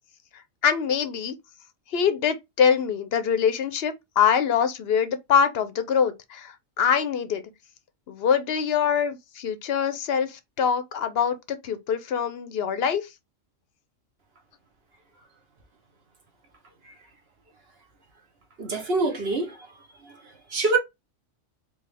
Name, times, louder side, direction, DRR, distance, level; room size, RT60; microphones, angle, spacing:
voice 1, 0.6-1.4 1.9-7.4 8.1-13.1, left 7 dB, 55° left, 0.8 m, -24 dB
voice 2, 18.6-19.6 20.5-20.8, right 3 dB, 50° right, 1.3 m, -24 dB
4.7 x 2.4 x 3.4 m
omnidirectional pair, 1.4 m